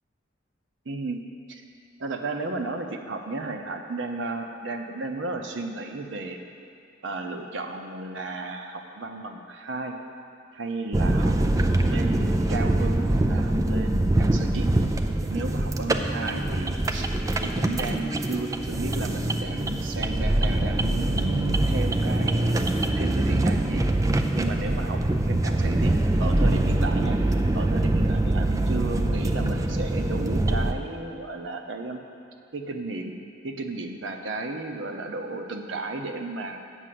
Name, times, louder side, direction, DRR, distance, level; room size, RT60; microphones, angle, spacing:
voice 1, 0.9-1.2 1.5-1.6 2.0-6.4 7.0-10.0 10.5-11.3 11.8-14.7 15.3-17.1 17.4-23.9 24.3-25.0 25.3-27.2 27.5-32.0 32.5-33.2 33.4-36.6, right 2 dB, 80° right, 4 dB, 0.8 m, -34 dB
sound 1, 10.9-30.7, right 1 dB, 20° right, 0.4 m, -24 dB
8.2 x 6.2 x 7.6 m, 2.5 s
head